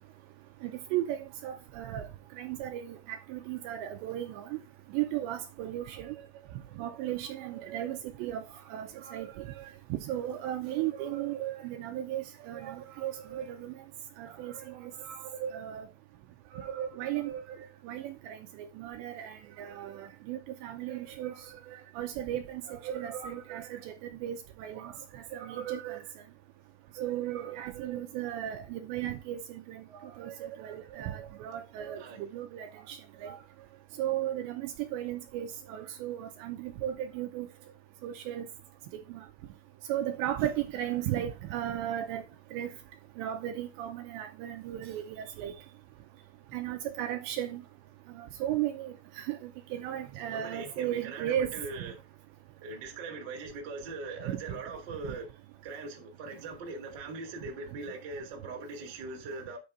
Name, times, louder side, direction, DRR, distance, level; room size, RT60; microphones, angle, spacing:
voice 1, 0.6-2.1 2.4-4.5 4.9-6.2 6.8-8.4 8.7-9.7 9.9-13.7 14.2-15.9 16.5-17.6 17.8-21.4 21.7-23.9 24.2-26.0 27.0-33.4 34.0-37.5 38.0-38.5 39.1-39.2 39.9-42.2 42.5-42.7 43.2-45.5 46.5-47.6 48.2-51.6 54.3-54.4, right 11 dB, 80° right, 2.7 m, -35 dB
voice 2, 50.2-52.0 52.6-55.3 55.6-59.6, right 3 dB, 45° right, 1.4 m, -41 dB
9.5 x 4.3 x 5.1 m
omnidirectional pair, 5.6 m